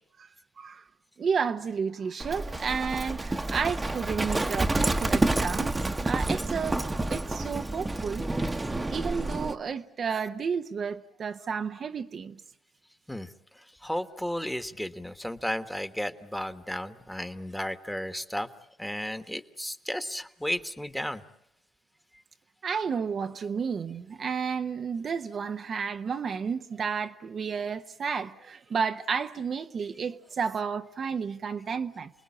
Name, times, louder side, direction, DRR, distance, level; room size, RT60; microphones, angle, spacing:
voice 1, 1.2-5.8 6.0-6.8 7.1-8.6 8.9-12.4 22.6-32.1, right 6 dB, 50° right, 1.0 m, -32 dB
Livestock farm animals working animals, 2.2-9.6, right 2 dB, 20° right, 1.2 m, -29 dB
voice 2, 13.8-18.5 18.8-21.2, equal, 5° left, 1.4 m, -33 dB
29.0 x 20.0 x 8.7 m
cardioid pair, 90°, 0 cm